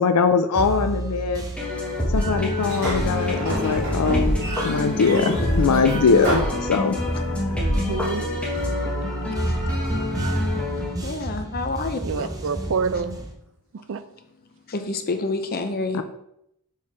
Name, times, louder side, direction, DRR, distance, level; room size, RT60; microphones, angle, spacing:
voice 1, 0.0-1.4 2.1-4.4 4.6-7.0 15.9-16.0, left 5 dB, 85° left, 9 dB, 0.5 m, -21 dB
sound 1, 0.6-13.3, right 1 dB, 15° right, 0.9 m, -30 dB
sound 2, 1.6-10.9, left 1 dB, 5° left, 1.2 m, -27 dB
Sliding door, 2.6-7.3, right 1 dB, 45° right, 2.1 m, -31 dB
voice 2, 5.1-5.7 9.5-9.6 11.0-12.3 14.7-16.0, left 3 dB, 45° left, 7 dB, 0.7 m, -28 dB
voice 3, 7.5-8.3 12.0-13.2 13.9-14.0, right 5 dB, 60° right, 12 dB, 0.4 m, -27 dB
5.7 x 4.6 x 4.7 m, 0.78 s
head